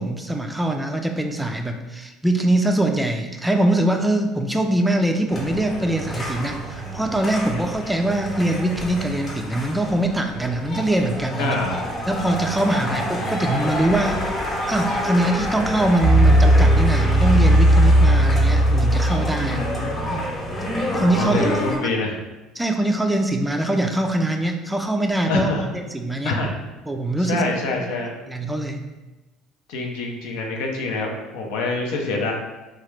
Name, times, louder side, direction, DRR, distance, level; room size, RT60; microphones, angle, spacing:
voice 1, 0.0-11.6 12.1-14.4 14.7-19.6 20.1-20.2 20.9-21.5 22.6-26.3 26.9-27.4 28.3-28.8, right 1 dB, 10° right, 3 dB, 0.3 m, -23 dB
sound 1, 5.3-21.8, right 1 dB, 30° left, 0.8 m, -21 dB
voice 2, 11.4-11.8 12.8-13.1 19.3-20.3 21.1-22.2 25.3-25.6 26.2-26.5 27.3-28.1 29.7-32.3, left 2 dB, 85° left, 0 dB, 0.6 m, -26 dB
2.9 x 2.3 x 3.2 m, 1.1 s
supercardioid pair, 105°, 0 cm